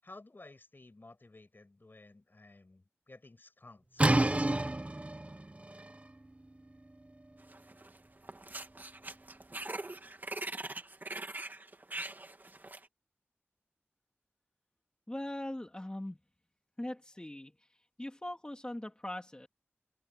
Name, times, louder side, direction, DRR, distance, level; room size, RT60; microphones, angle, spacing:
voice 1, 0.0-4.1, left 2 dB, 50° left, 7.6 m, -55 dB
sound 1, 4.0-9.6, right 1 dB, 30° right, 0.9 m, -33 dB
sound 2, 7.5-8.0 8.2-12.9, right 2 dB, 45° right, 2.2 m, -42 dB
voice 2, 15.1-16.2 16.8-19.5, left 1 dB, 20° left, 2.7 m, -41 dB
wide cardioid pair, 65°, 4 cm